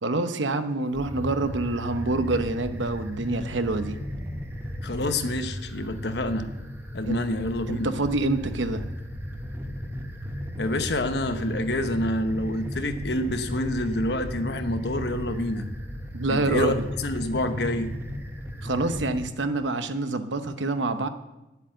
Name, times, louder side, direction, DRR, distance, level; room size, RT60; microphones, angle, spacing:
voice 1, 0.0-4.0 7.1-7.2 7.7-8.9 16.1-16.8 18.6-21.1, right 2 dB, 85° right, 9 dB, 0.9 m, -27 dB
sound 1, 0.9-19.2, equal, 10° right, 1.0 m, -35 dB
voice 2, 4.8-6.5 6.9-7.9 10.6-15.7 16.3-17.9, left 1 dB, 65° left, 8 dB, 1.0 m, -27 dB
10.0 x 8.3 x 7.8 m, 0.98 s
head